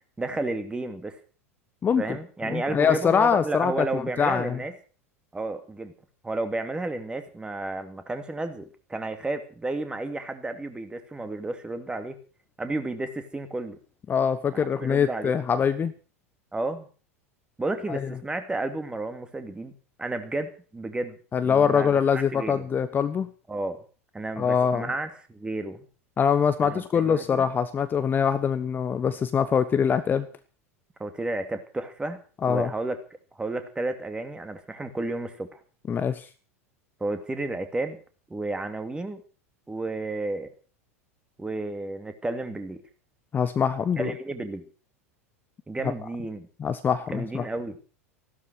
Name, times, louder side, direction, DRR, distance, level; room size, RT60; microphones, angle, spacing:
voice 1, 0.2-1.2 2.0-4.7 5.3-5.9 6.2-12.2 12.6-13.8 14.5-15.4 16.5-16.9 17.6-19.7 20.0-21.2 21.4-22.7 23.5-23.8 24.1-25.8 26.6-27.4 31.0-33.0 33.4-35.6 37.0-38.0 38.3-39.2 39.7-40.5 41.4-42.8 44.0-44.7 45.7-46.5 47.1-47.8, right 2 dB, 10° right, 9 dB, 2.6 m, -32 dB
voice 2, 2.5-4.6 14.1-15.9 17.9-18.0 21.3-23.3 24.4-24.9 26.2-30.3 32.4-32.7 35.9-36.3 43.3-44.1 46.6-47.4, left 7 dB, 25° left, 12 dB, 1.1 m, -23 dB
15.5 x 12.5 x 6.3 m, 0.39 s
figure-of-eight pair, 85°, 8 cm